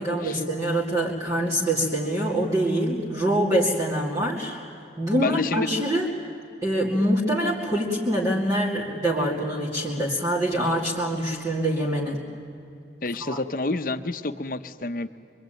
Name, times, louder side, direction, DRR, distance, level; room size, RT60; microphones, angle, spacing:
voice 1, 0.0-4.6 5.0-6.1 6.6-12.2 13.3-13.4, right 1 dB, 20° right, -5 dB, 2.5 m, -25 dB
voice 2, 5.2-5.7 13.0-15.1, left 2 dB, 50° left, 10 dB, 0.9 m, -29 dB
24.5 x 24.0 x 9.1 m, 2.6 s
head